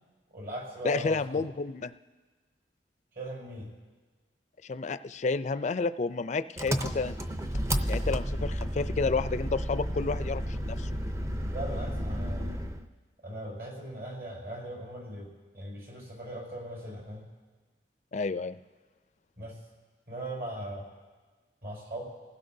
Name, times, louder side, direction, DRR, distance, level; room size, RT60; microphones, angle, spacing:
voice 1, 0.3-1.4 3.1-3.7 11.5-12.5 13.2-17.3 19.4-19.6 20.1-20.9 21.6-22.0, right 1 dB, 60° right, -2 dB, 5.7 m, -39 dB
voice 2, 0.8-1.9 4.6-7.2 7.9-10.9 18.1-18.6, left 4 dB, 40° left, 13 dB, 0.4 m, -30 dB
Engine, 6.6-12.9, equal, 15° right, 0.5 m, -32 dB
28.5 x 16.0 x 2.7 m, 1.4 s
head